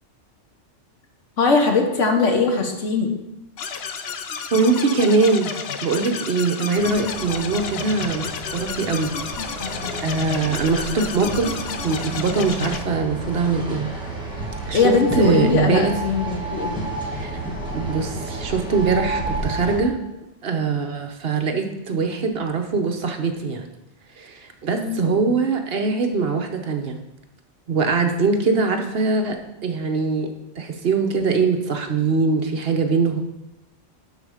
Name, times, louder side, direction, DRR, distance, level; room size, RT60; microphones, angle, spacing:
voice 1, 1.4-3.1 14.7-16.8 24.8-25.0, left 4 dB, 85° left, 3 dB, 1.5 m, -20 dB
sound 1, 3.6-12.8, left 6 dB, 60° left, 0.8 m, -31 dB
voice 2, 4.5-5.5 5.8-9.1 9.4-9.7 10.0-13.9 14.7-15.9 17.1-17.3 17.7-20.0 20.4-23.7 24.2-27.0 27.7-29.4 29.6-30.3 30.6-33.2, right 4 dB, 55° right, 4 dB, 1.0 m, -22 dB
sound 2, 6.8-19.8, right 2 dB, 5° right, 1.7 m, -31 dB
12.0 x 4.2 x 4.9 m, 0.95 s
omnidirectional pair, 1.2 m